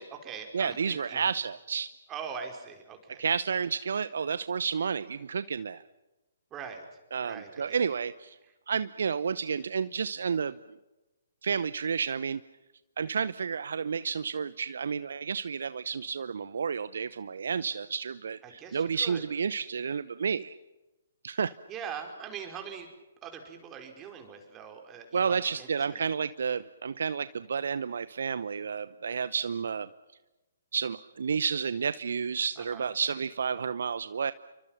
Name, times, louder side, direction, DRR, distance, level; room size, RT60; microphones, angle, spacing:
voice 1, 0.0-1.3 2.1-3.2 6.5-6.8 7.2-7.9 18.4-19.2 21.7-22.9 23.2-25.7 25.9-26.1 32.6-32.9, right 7 dB, 20° right, 4 dB, 4.9 m, -42 dB
voice 2, 0.5-1.9 3.2-5.8 7.1-8.4 8.7-10.6 11.4-12.4 13.0-20.6 21.2-21.5 25.1-29.9 30.7-34.3, right 6 dB, 60° right, 15 dB, 0.8 m, -31 dB
29.0 x 24.5 x 5.9 m, 1.0 s
figure-of-eight pair, 130°, 0 cm